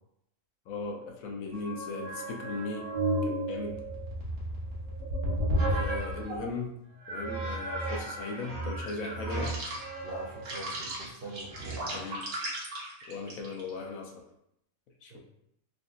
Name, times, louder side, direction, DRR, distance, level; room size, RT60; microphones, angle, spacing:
voice 1, 0.7-2.9 3.2-3.9 5.7-6.7 7.1-9.6 11.9-12.2 13.1-14.2 15.0-15.2, left 3 dB, 75° left, 2 dB, 1.0 m, -38 dB
sound 1, 1.5-6.5 7.0-13.7, right 1 dB, 90° right, 1.3 m, -33 dB
voice 2, 10.0-12.1 15.1-15.2, equal, 60° right, -3 dB, 0.6 m, -43 dB
3.7 x 2.5 x 2.4 m, 0.77 s
omnidirectional pair, 1.5 m